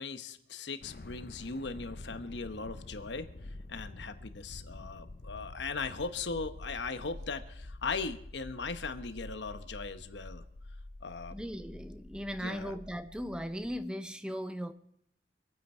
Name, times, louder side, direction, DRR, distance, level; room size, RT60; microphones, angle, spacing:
voice 1, 0.0-3.3 3.7-10.4 11.0-11.4 12.4-12.7, left 4 dB, 85° left, 1.0 m, -38 dB
sound 1, 0.8-13.8, left 2 dB, 55° left, 0.6 m, -47 dB
voice 2, 11.3-14.7, equal, 5° right, 0.5 m, -38 dB
25.0 x 9.2 x 4.3 m
head